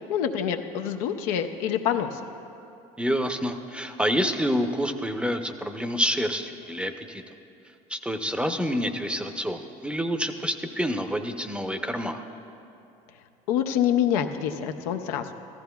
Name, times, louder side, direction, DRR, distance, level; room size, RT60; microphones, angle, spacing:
voice 1, 0.1-2.2 13.5-15.3, left 9 dB, 85° left, 6 dB, 0.6 m, -26 dB
voice 2, 3.0-7.2 7.9-12.2, equal, 5° right, 7 dB, 0.7 m, -28 dB
15.0 x 13.0 x 2.3 m, 2.8 s
supercardioid pair, 75°, 18 cm